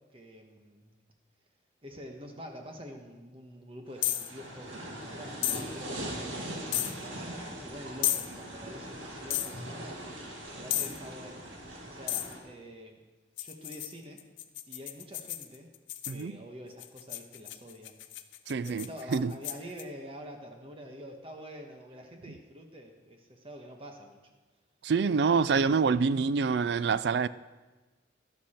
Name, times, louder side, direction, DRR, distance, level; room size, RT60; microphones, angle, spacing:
voice 1, 0.1-1.0 1.8-11.5 11.8-13.0 13.4-14.3 14.7-15.7 16.1-17.9 18.6-24.2, equal, 30° right, 1.3 m, -47 dB
sound 1, 4.0-4.3 5.4-5.6 6.7-6.9 8.0-8.3 9.3-9.5 10.7-11.0 12.1-12.3 13.4-16.2 16.8-19.8, left 13 dB, 75° left, 0.6 m, -33 dB
sound 2, 4.0-12.4, right 1 dB, 85° right, 2.1 m, -41 dB
voice 2, 16.1-16.4 18.5-19.3 24.8-27.3, right 5 dB, 60° right, 0.3 m, -26 dB
12.0 x 11.5 x 4.4 m
head